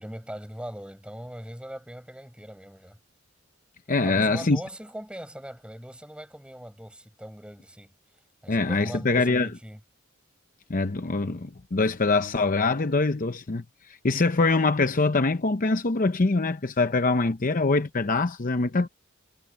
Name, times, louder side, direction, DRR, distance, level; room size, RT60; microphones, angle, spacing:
voice 1, 0.0-3.0 4.0-7.9 8.4-9.8, equal, 5° right, 6.6 m, -40 dB
voice 2, 3.9-4.6 8.5-9.5 10.7-13.6 14.0-18.9, left 3 dB, 40° left, 0.7 m, -24 dB
head